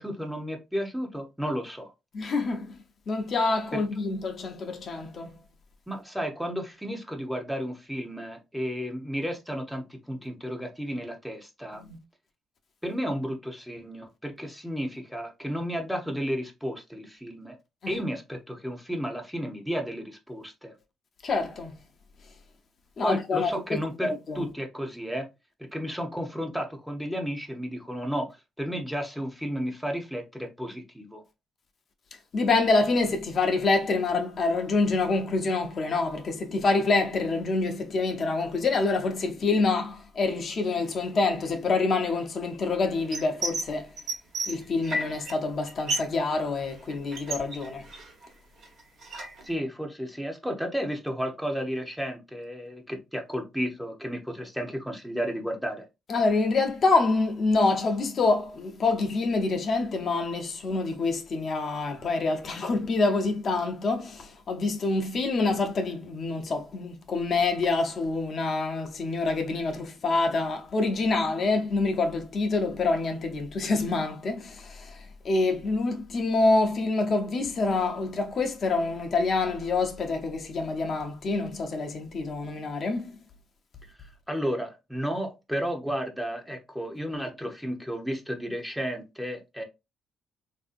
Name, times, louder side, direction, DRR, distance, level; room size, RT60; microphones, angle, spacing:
voice 1, 0.0-1.9 3.7-3.8 5.9-11.8 12.8-17.6 17.9-20.7 23.0-25.3 25.7-28.3 28.6-31.2 49.4-55.9 84.3-89.6, equal, 5° right, 0.8 m, -33 dB
voice 2, 2.1-5.3 11.8-12.0 17.8-17.9 21.2-21.7 23.0-23.5 24.0-24.5 32.3-43.9 44.5-47.9 56.1-83.2, left 3 dB, 50° left, 0.7 m, -26 dB
sound 1, 43.1-43.7 44.0-45.3 45.6-46.2 46.4-48.3 48.6-49.4, right 2 dB, 65° right, 1.2 m, -32 dB
3.3 x 2.7 x 2.5 m
cardioid pair, 90°, 0 cm